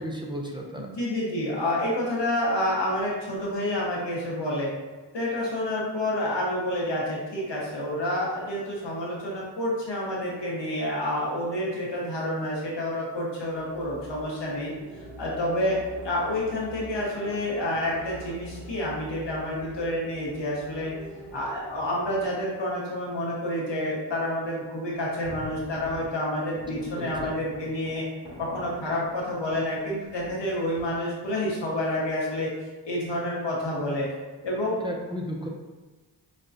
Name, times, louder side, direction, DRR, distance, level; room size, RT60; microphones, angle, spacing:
voice 1, 0.0-0.9 27.0-27.3 34.8-35.5, equal, 10° right, -1 dB, 0.5 m, -34 dB
voice 2, 0.8-4.7 5.1-14.7 15.2-20.9 21.3-28.0 28.4-32.5 32.8-34.1 34.4-34.8, left 1 dB, 75° left, -4 dB, 1.1 m, -29 dB
sound 1, 13.4-22.7, equal, 85° right, 1.2 m, -44 dB
sound 2, 24.9-25.0 25.2-26.1 26.6-29.2 29.5-29.6 30.1-30.4 30.8-30.9, left 1 dB, 55° right, 1.5 m, -42 dB
5.2 x 2.2 x 2.6 m, 1.3 s
cardioid pair, 50°, 43 cm